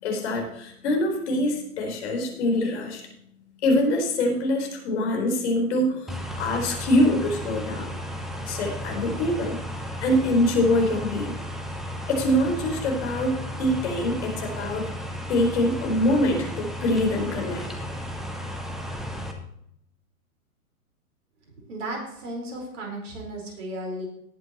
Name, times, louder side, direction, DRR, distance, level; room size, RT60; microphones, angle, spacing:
voice 1, 0.0-3.0 3.6-7.9 8.5-9.6 10.0-11.3 12.1-14.8 15.3-17.6, left 1 dB, 50° left, 1 dB, 4.5 m, -24 dB
sound 1, 6.1-19.3, equal, ahead, 0.5 m, -34 dB
voice 2, 21.7-24.1, right 1 dB, 55° right, 0 dB, 4.8 m, -34 dB
18.5 x 7.8 x 3.1 m, 0.74 s
figure-of-eight pair, 115°, 44 cm